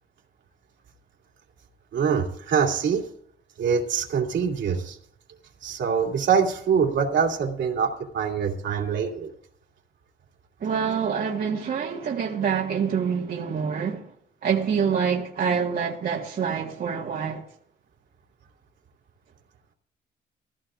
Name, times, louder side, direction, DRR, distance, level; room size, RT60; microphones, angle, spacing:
voice 1, 1.9-3.0 3.6-5.0 5.6-9.3, right 6 dB, 70° right, 2.6 m, -24 dB
voice 2, 10.6-14.1 14.4-17.4, right 7 dB, 50° right, 1.7 m, -26 dB
19.0 x 15.5 x 2.5 m
cardioid pair, 90°, 20 cm